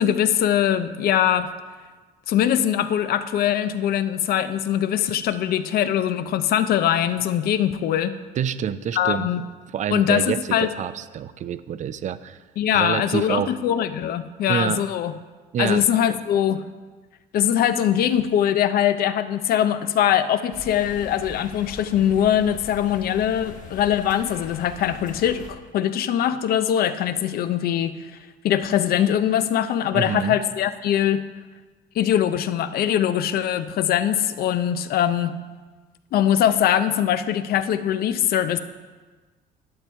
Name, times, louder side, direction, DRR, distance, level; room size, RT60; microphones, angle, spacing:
voice 1, 0.0-1.5 2.3-8.2 9.0-9.4 9.9-10.7 12.6-15.1 15.6-16.6 17.3-27.9 28.4-31.2 32.0-35.3 36.1-38.6, left 10 dB, 65° left, 12 dB, 0.6 m, -22 dB
voice 2, 8.4-9.3 9.7-12.4 12.7-13.5 14.5-14.8 15.5-15.9 29.9-30.4, right 9 dB, 45° right, 14 dB, 0.5 m, -27 dB
sound 1, 20.5-25.5, left 4 dB, 50° left, 1.3 m, -41 dB
11.0 x 7.2 x 4.5 m, 1.3 s
cardioid pair, 110°, 17 cm